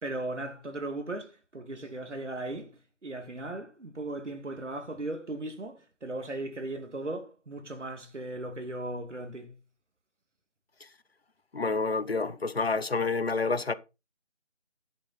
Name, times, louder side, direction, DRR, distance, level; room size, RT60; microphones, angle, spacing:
voice 1, 0.0-9.6, right 2 dB, 70° right, 2.5 m, -37 dB
voice 2, 11.5-13.7, left 4 dB, 55° left, 0.9 m, -28 dB
10.0 x 7.2 x 4.1 m
figure-of-eight pair, 175°, 37 cm